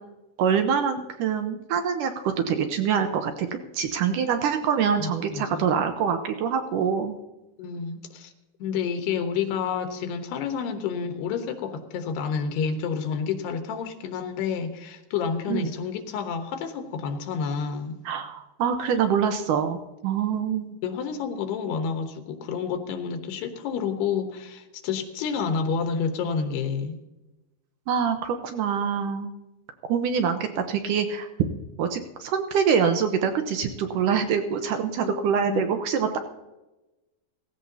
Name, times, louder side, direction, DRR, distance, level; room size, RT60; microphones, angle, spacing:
voice 1, 0.4-3.5 3.7-7.1 15.5-15.7 18.1-19.8 20.0-20.8 27.9-29.3 29.9-31.3 31.8-36.2, right 7 dB, 75° right, 7 dB, 2.0 m, -25 dB
voice 2, 5.0-5.7 7.6-8.3 8.6-18.0 20.8-27.0 35.0-35.6, left 6 dB, 80° left, 6 dB, 3.1 m, -29 dB
17.0 x 16.5 x 2.8 m, 1.0 s
omnidirectional pair, 4.7 m